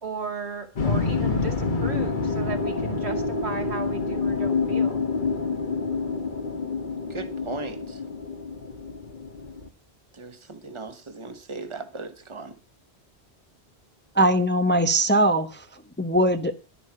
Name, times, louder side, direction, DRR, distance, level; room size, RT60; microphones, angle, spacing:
voice 1, 0.0-5.1, right 4 dB, 70° right, 2.6 m, -35 dB
sound 1, 0.7-9.7, left 4 dB, 50° left, 1.3 m, -27 dB
voice 2, 7.1-8.0 10.1-12.5, right 3 dB, 25° right, 1.4 m, -37 dB
voice 3, 14.1-15.6 16.0-16.5, right 1 dB, 10° left, 0.8 m, -21 dB
11.5 x 10.0 x 5.9 m
omnidirectional pair, 1.1 m